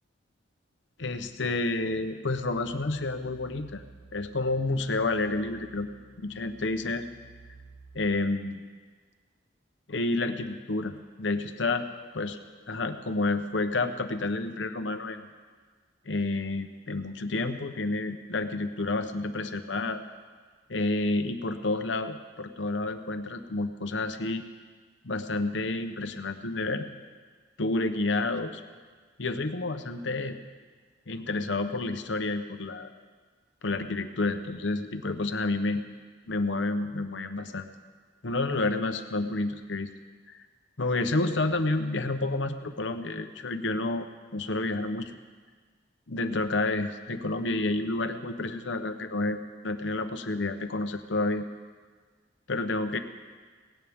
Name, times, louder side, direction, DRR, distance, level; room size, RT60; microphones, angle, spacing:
voice 1, 1.0-3.8 4.1-5.9 6.2-7.1 7.9-8.6 9.9-11.9 12.1-12.4 12.7-15.3 16.1-20.0 20.7-24.4 25.0-26.8 27.6-28.6 29.2-30.4 31.1-32.9 33.6-35.8 36.3-37.7 38.2-39.9 40.3-40.4 40.8-44.1 44.3-45.1 46.1-51.5 52.5-53.0, left 2 dB, 70° left, 8 dB, 0.9 m, -29 dB
sound 1, 2.2-8.1, right 4 dB, 65° right, 1.4 m, -53 dB
18.5 x 16.5 x 3.6 m, 1.5 s
head